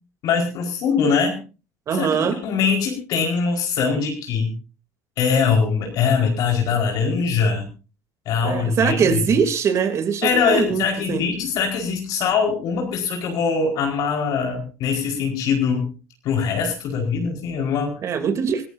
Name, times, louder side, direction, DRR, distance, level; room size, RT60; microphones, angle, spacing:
voice 1, 0.2-1.4 2.0-4.5 5.2-7.7 8.2-9.2 10.2-15.9 16.2-18.1, left 5 dB, 60° left, 2 dB, 4.8 m, -22 dB
voice 2, 1.9-2.4 8.4-11.2 18.0-18.7, right 6 dB, 45° right, 8 dB, 3.0 m, -22 dB
25.5 x 14.5 x 2.7 m, 0.34 s
supercardioid pair, 95°, 7 cm